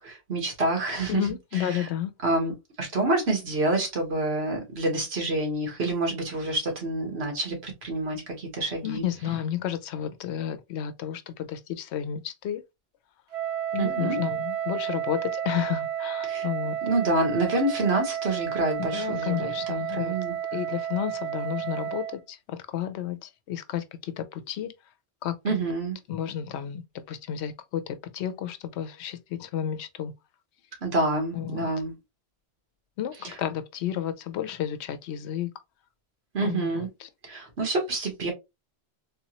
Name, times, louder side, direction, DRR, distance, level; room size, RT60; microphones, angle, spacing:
voice 1, 0.0-1.3 1.5-1.9 2.2-2.5 2.8-9.0 13.8-14.2 16.2-16.5 16.8-20.4 25.4-26.0 30.8-31.9 33.2-33.4 36.3-36.9 37.2-38.3, right 2 dB, 75° right, 1.6 m, -27 dB
voice 2, 1.1-2.1 8.8-12.6 13.7-16.8 18.9-20.2 20.5-24.7 25.2-25.6 26.1-30.1 31.3-31.7 33.0-35.5 36.4-37.1, left 10 dB, 85° left, 0.9 m, -32 dB
Wind instrument woodwind instrument, 13.3-22.2, right 10 dB, 45° right, 0.5 m, -31 dB
3.6 x 2.9 x 2.9 m
omnidirectional pair, 1.1 m